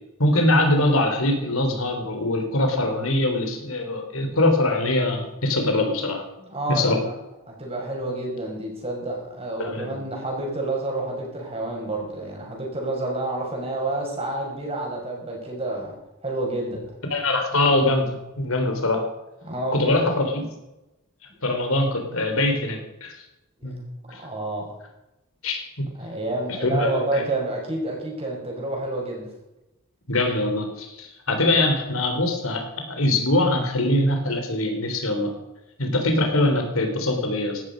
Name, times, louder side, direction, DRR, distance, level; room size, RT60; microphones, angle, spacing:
voice 1, 0.2-6.2 6.7-7.0 9.6-10.0 17.1-19.0 19.7-20.5 21.4-23.1 23.6-23.8 24.1-24.2 25.4-25.6 26.6-27.2 30.1-35.3 35.8-37.6, left 1 dB, 80° left, 4 dB, 3.6 m, -23 dB
voice 2, 6.4-7.1 7.5-15.9 16.2-16.8 19.4-20.1 23.6-23.7 24.2-24.7 26.0-29.3, right 2 dB, 30° right, 0 dB, 5.5 m, -29 dB
16.5 x 13.0 x 5.3 m, 0.94 s
head